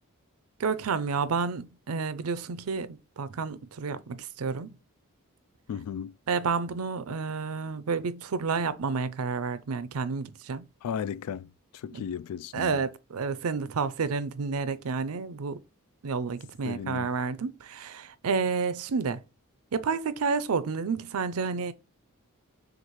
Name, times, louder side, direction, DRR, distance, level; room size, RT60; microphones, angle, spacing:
voice 1, 0.6-4.8 6.3-10.6 11.9-12.0 12.5-15.6 16.0-19.2 19.7-21.7, right 5 dB, 70° right, 0.5 m, -30 dB
voice 2, 5.7-6.1 10.8-12.8 16.6-17.1, left 8 dB, 80° left, 0.3 m, -35 dB
6.4 x 2.4 x 3.0 m
head